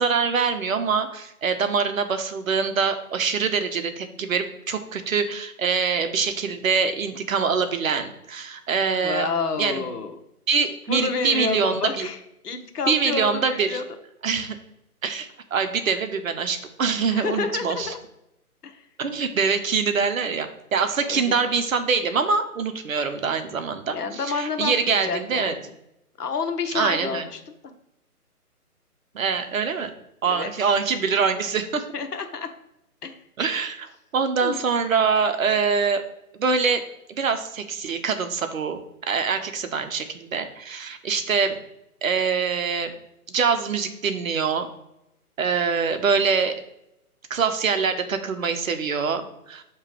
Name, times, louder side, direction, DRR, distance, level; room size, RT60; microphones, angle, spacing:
voice 1, 0.0-9.3 9.6-9.8 10.5-12.1 12.9-13.8 14.2-14.6 15.0-17.9 19.0-25.5 26.7-27.2 29.1-29.9 30.2-31.8 33.4-33.9 34.1-36.0 36.4-36.8 37.2-41.6 42.0-42.9 43.3-44.7 45.4-46.5 47.3-49.6, right 5 dB, 60° right, 8 dB, 0.8 m, -24 dB
voice 2, 9.0-10.2 10.9-14.0 17.1-18.0 18.6-18.9 21.1-21.4 23.9-25.6 26.2-27.4 30.2-30.7 31.9-32.5 33.0-33.1 34.4-34.6, left 4 dB, 85° left, 6 dB, 1.0 m, -29 dB
6.4 x 3.0 x 4.9 m, 0.84 s
hypercardioid pair, 155°, 45 cm